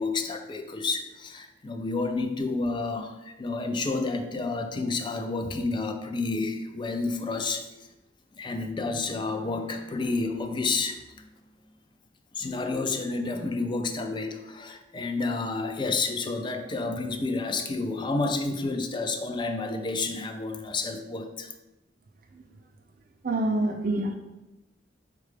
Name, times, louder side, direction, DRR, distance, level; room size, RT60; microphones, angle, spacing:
voice 1, 0.0-7.6 8.4-11.2 12.4-21.5, left 3 dB, 25° left, 6 dB, 0.3 m, -30 dB
voice 2, 23.2-24.1, right 2 dB, 50° right, 5 dB, 0.4 m, -26 dB
4.8 x 2.2 x 4.9 m, 0.99 s
head